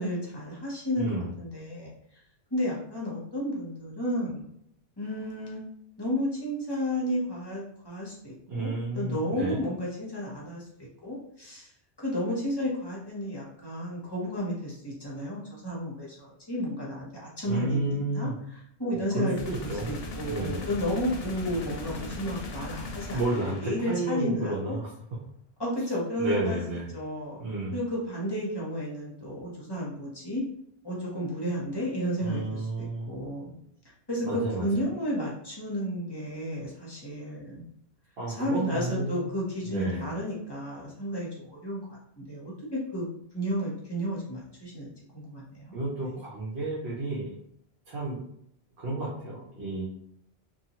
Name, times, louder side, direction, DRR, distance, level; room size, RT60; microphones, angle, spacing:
voice 1, 0.0-1.9 2.5-4.5 5.0-5.6 6.0-10.6 11.0-11.7 12.0-19.4 19.6-23.2 23.6-24.8 25.6-26.6 26.9-27.4 27.7-30.4 30.8-33.6 34.1-37.7 38.4-43.1 43.3-45.8, equal, 25° left, -5 dB, 0.7 m, -32 dB
voice 2, 1.0-1.3 8.5-9.6 17.4-18.3 18.9-20.0 20.2-20.6 23.1-24.9 26.2-26.9 27.4-27.7 32.2-33.1 34.2-34.8 38.2-39.2 39.7-40.1 45.7-47.3 47.9-48.2 48.8-49.9, right 2 dB, 75° right, -5 dB, 0.9 m, -31 dB
sound 1, 19.4-24.1, left 2 dB, 75° left, 0.8 m, -39 dB
2.6 x 2.3 x 2.8 m, 0.72 s
omnidirectional pair, 1.1 m